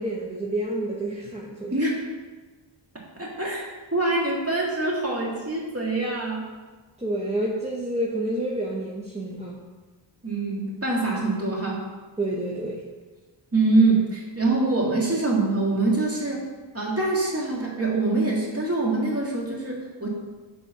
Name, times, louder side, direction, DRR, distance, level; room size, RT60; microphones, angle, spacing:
voice 1, 0.0-1.7 7.0-9.6 12.2-12.8, right 1 dB, 15° right, -3 dB, 0.8 m, -29 dB
voice 2, 1.7-2.1 3.2-6.5 10.2-11.9 13.5-16.4 16.7-20.1, right 2 dB, 30° right, -3 dB, 2.0 m, -24 dB
6.7 x 3.7 x 5.8 m, 1.3 s
wide cardioid pair, 65°, 47 cm